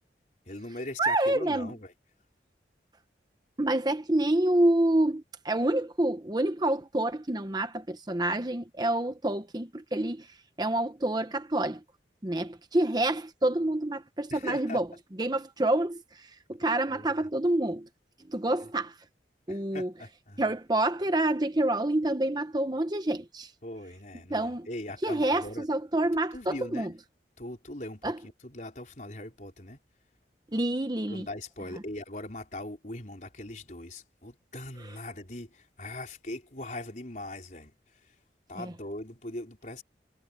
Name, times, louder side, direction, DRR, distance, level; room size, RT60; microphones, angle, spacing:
voice 1, 0.4-1.9 14.3-14.8 16.9-17.3 18.6-18.7 19.5-20.4 23.6-25.7 26.3-27.0 27.4-29.8 31.1-38.2 38.5-39.8, left 1 dB, 45° left, 4.5 m, -41 dB
voice 2, 1.0-1.7 3.6-11.8 12.2-14.9 15.2-17.9 18.3-19.0 19.5-19.9 20.4-23.5 24.3-24.7 25.0-26.9 28.0-28.2 30.5-31.3, right 1 dB, 25° right, 0.9 m, -27 dB
head